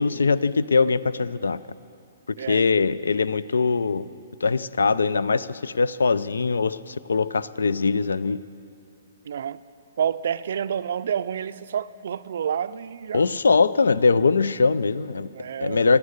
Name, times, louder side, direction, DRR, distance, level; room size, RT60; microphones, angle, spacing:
voice 1, 0.0-1.6 2.5-4.0 4.4-8.4 13.1-15.3 15.6-16.0, left 4 dB, 85° left, 17 dB, 0.3 m, -22 dB
voice 2, 2.4-2.7 9.2-9.6 10.0-13.3 15.3-15.8, right 8 dB, 65° right, 15 dB, 0.4 m, -29 dB
11.5 x 9.5 x 8.0 m, 2.6 s
hypercardioid pair, 135°, 0 cm